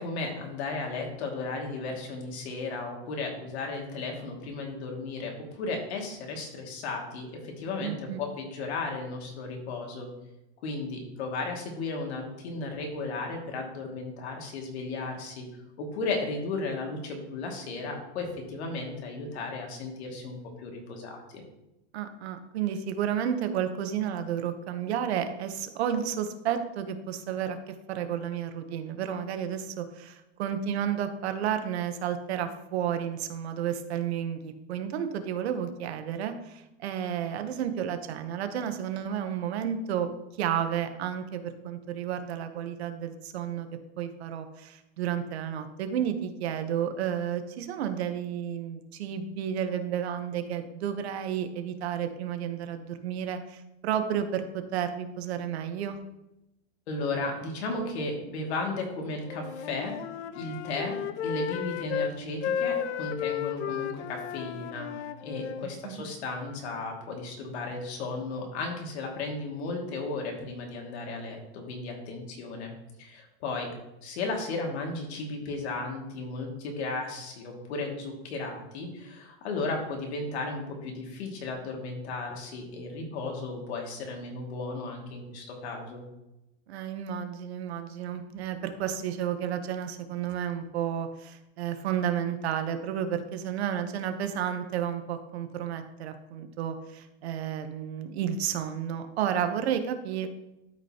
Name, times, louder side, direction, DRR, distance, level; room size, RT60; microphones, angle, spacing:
voice 1, 0.0-10.1 10.6-15.5 15.8-21.4 56.9-59.9 60.3-61.0 61.2-64.9 65.2-72.7 73.0-73.7 74.0-86.0, left 3 dB, 70° left, 1 dB, 2.3 m, -35 dB
voice 2, 7.8-8.2 21.9-40.1 40.4-43.7 44.0-56.0 65.6-66.0 86.7-100.3, right 9 dB, 65° right, 8 dB, 1.0 m, -32 dB
Wind instrument woodwind instrument, 59.3-62.2 62.4-65.7, left 8 dB, 85° left, 0.7 m, -33 dB
12.5 x 5.3 x 2.9 m, 0.91 s
supercardioid pair, 180°, 34 cm